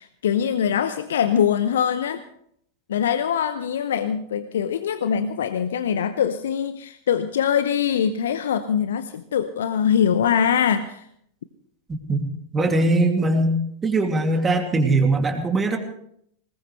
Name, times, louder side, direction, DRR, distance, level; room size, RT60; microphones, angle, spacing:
voice 1, 0.0-2.2 2.9-11.0, left 8 dB, 60° left, 11 dB, 0.8 m, -23 dB
voice 2, 12.5-13.5 13.8-15.8, right 2 dB, 15° right, 4 dB, 2.6 m, -20 dB
20.5 x 19.0 x 3.3 m, 0.69 s
figure-of-eight pair, 90°, 0 cm